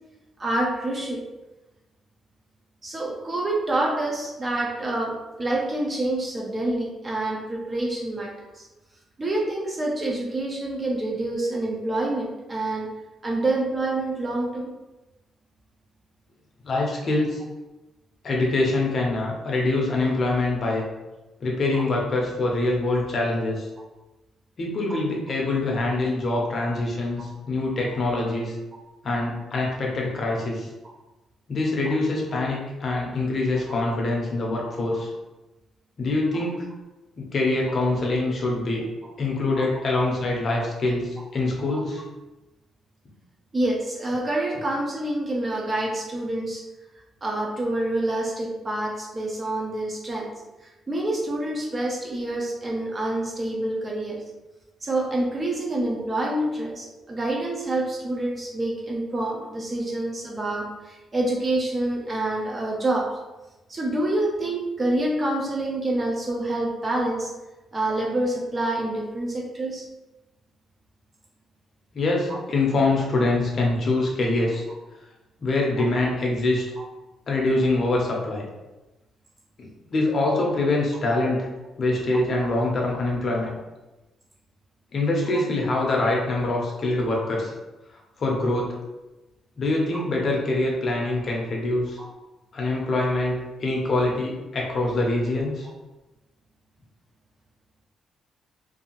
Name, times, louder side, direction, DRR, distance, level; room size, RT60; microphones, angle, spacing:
voice 1, 0.4-1.2 2.8-8.7 9.2-12.9 13.2-14.7 20.0-20.1 21.7-21.8 24.9-25.0 27.2-27.3 31.9-32.0 33.7-33.8 36.3-36.4 39.5-39.7 41.7-41.8 43.5-46.6 47.2-50.3 50.9-54.2 54.8-63.2 63.7-67.3 67.7-69.8 76.8-76.9 82.4-82.5 89.9-90.0 92.0-92.1, right 1 dB, 25° right, -1 dB, 0.4 m, -27 dB
voice 2, 16.6-17.4 18.2-20.8 21.4-23.7 24.6-28.5 29.0-30.7 31.5-35.1 36.0-36.6 37.2-38.8 39.2-42.0 71.9-74.6 75.4-76.6 77.3-78.4 79.6-81.5 81.8-83.6 84.9-87.5 88.2-88.8 89.6-92.0 92.5-95.7, left 2 dB, 40° left, -2 dB, 0.6 m, -24 dB
2.6 x 2.4 x 2.8 m, 1.1 s
cardioid pair, 145°, 0 cm